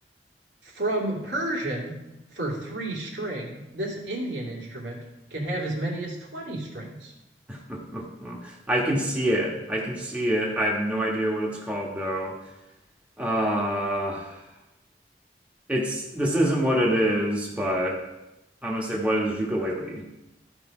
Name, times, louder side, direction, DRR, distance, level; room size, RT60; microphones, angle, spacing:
voice 1, 0.6-2.0 2.3-5.0 5.3-7.1, right 1 dB, 85° right, -3 dB, 2.6 m, -31 dB
voice 2, 7.5-12.3 13.2-14.4 15.7-18.0 18.6-20.0, equal, 10° right, -3 dB, 1.4 m, -26 dB
13.5 x 4.9 x 4.9 m, 0.95 s
head